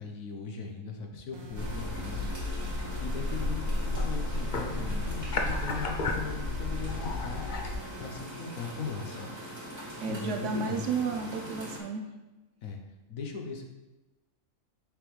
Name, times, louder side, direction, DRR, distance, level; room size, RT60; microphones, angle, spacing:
voice 1, 0.0-2.3 2.7-7.4 8.0-9.4 10.1-10.9 12.6-12.8 13.1-13.6, left 4 dB, 75° left, 3 dB, 1.2 m, -39 dB
sound 1, 1.3-8.2, right 4 dB, 85° right, 1.2 m, -46 dB
sound 2, 1.5-7.7, left 2 dB, 50° left, 0.6 m, -32 dB
sound 3, 1.5-11.8, equal, 20° right, 1.4 m, -43 dB
voice 2, 10.0-12.1, right 5 dB, 65° right, 4 dB, 0.8 m, -32 dB
6.8 x 5.1 x 3.2 m, 1.1 s
omnidirectional pair, 1.5 m